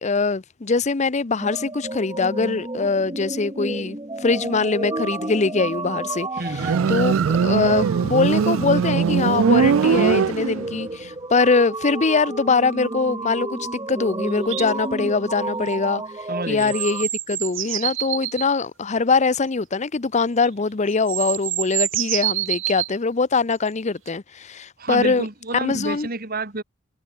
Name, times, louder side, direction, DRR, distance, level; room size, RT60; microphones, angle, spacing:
voice 1, 0.0-6.3 6.9-7.2 7.4-13.6 13.9-16.0 16.5-25.2 25.5-26.1, left 4 dB, 35° left, 0.7 m, -22 dB
sound 1, 1.4-17.0, right 2 dB, 20° right, 2.9 m, -32 dB
voice 2, 6.4-7.3 16.3-16.7 24.8-26.6, right 2 dB, 50° right, 2.6 m, -29 dB
Motorcycle, 6.5-10.9, right 6 dB, 90° right, 0.4 m, -20 dB
sound 2, 14.5-14.7 16.6-18.5 20.4-20.5 20.9-22.9 24.1-24.2, right 15 dB, 75° right, 2.0 m, -26 dB
head